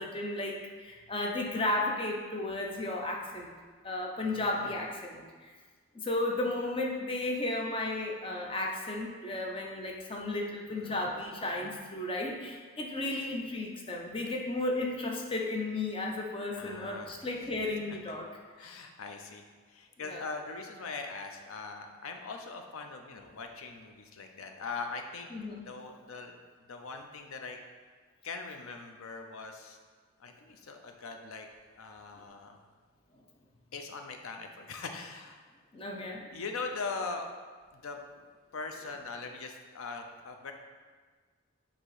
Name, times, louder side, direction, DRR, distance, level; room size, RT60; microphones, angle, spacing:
voice 1, 0.0-3.5 3.8-5.5 5.9-18.3 20.0-20.2 25.3-25.6 35.7-36.4, left 2 dB, 25° left, 0 dB, 0.6 m, -34 dB
voice 2, 4.2-4.8 10.7-11.0 16.6-17.1 17.9-18.2 18.6-19.4 19.7-25.3 25.6-26.3 26.7-27.6 28.2-29.8 30.2-31.5 31.8-32.6 33.7-35.4 36.3-37.3 37.8-38.0 38.5-40.5, left 4 dB, 85° left, 4 dB, 0.6 m, -41 dB
7.5 x 2.9 x 4.8 m, 1.5 s
head